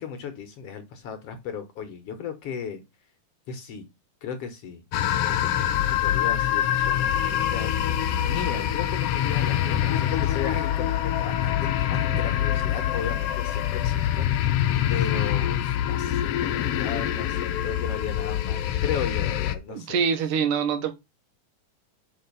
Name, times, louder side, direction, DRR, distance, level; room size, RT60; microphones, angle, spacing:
voice 1, 0.0-2.8 3.5-3.9 4.2-4.8 5.2-7.8 8.2-14.6 14.9-20.0, left 7 dB, 60° left, 1.8 m, -36 dB
sound 1, 4.9-19.6, left 11 dB, 85° left, 1.3 m, -25 dB
voice 2, 19.7-20.9, right 6 dB, 85° right, 2.7 m, -25 dB
5.6 x 5.5 x 5.4 m
omnidirectional pair, 3.6 m